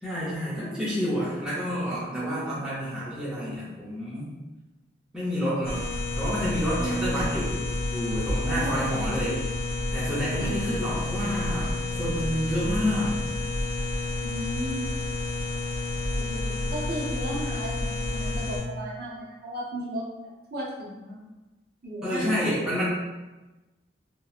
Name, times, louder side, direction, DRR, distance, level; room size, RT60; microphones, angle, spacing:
voice 1, 0.0-4.3 5.1-5.9 6.2-7.5 7.9-9.4 9.9-13.1 22.0-22.8, equal, 5° right, -11 dB, 0.6 m, -29 dB
voice 2, 2.1-2.5 6.8-7.2 8.4-8.9 10.3-10.5 14.2-14.9 16.1-20.1 20.5-21.2 21.8-22.6, right 1 dB, 55° right, -5 dB, 0.7 m, -34 dB
sound 1, 5.6-18.6, left 2 dB, 50° left, 0.7 m, -30 dB
2.8 x 2.2 x 2.3 m, 1.1 s
head